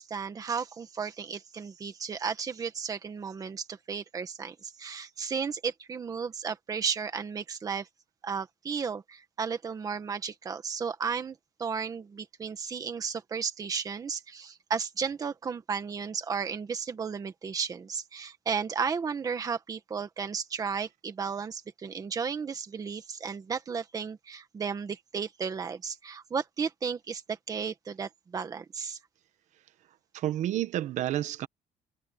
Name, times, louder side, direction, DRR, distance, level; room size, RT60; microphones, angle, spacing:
voice 1, 0.0-7.9 8.2-29.0, right 6 dB, 25° right, 1.7 m, -34 dB
voice 2, 30.1-31.5, right 13 dB, 55° right, 1.0 m, -30 dB
cardioid pair, 165°, 14 cm